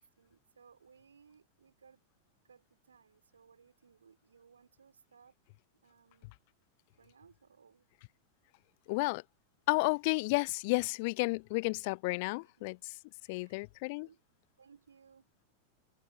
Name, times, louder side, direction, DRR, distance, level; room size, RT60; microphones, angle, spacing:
voice 1, 0.0-2.0 2.4-5.3 5.8-6.3 7.0-7.9 12.4-12.7 13.3-13.6 13.9-14.2 14.6-15.3, right 6 dB, 70° right, 4.8 m, -62 dB
voice 2, 8.9-9.2 9.7-12.8 13.3-14.1, left 27 dB, 50° left, 0.3 m, -32 dB
open air
figure-of-eight pair, 90°, 0 cm